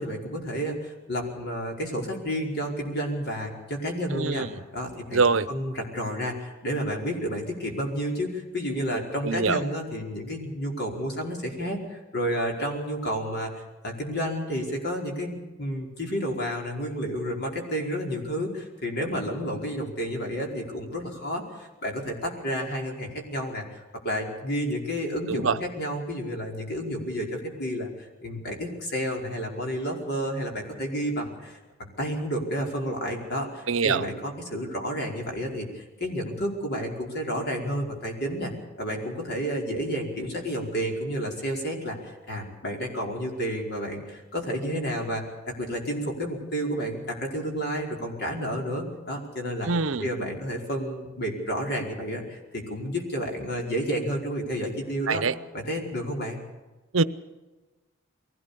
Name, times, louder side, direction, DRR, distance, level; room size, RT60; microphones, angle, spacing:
voice 1, 0.0-4.5 4.7-38.5 38.8-49.7 50.0-55.2 55.5-56.4, equal, 55° left, 1 dB, 5.0 m, -31 dB
voice 2, 4.1-4.5 5.1-5.5 9.2-9.6 25.3-25.6 33.7-34.0 49.6-50.1 55.1-55.4 56.9-57.0, right 4 dB, 70° right, 14 dB, 0.8 m, -24 dB
22.5 x 17.5 x 7.0 m, 1.2 s
head